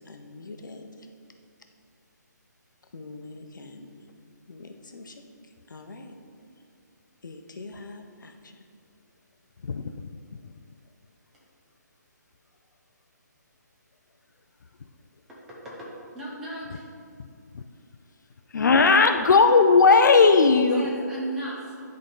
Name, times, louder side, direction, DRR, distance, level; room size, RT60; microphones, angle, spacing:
voice 1, 0.1-0.9 2.9-4.0 4.5-5.2 5.7-6.2 7.2-8.6, left 3 dB, 90° left, 5 dB, 0.8 m, -43 dB
voice 2, 15.3-15.9 16.1-16.8 20.7-21.7, right 1 dB, 5° right, -5 dB, 0.3 m, -36 dB
voice 3, 18.5-20.9, left 4 dB, 75° left, 7 dB, 0.4 m, -17 dB
10.5 x 3.8 x 3.8 m, 2.4 s
hypercardioid pair, 175°, 10 cm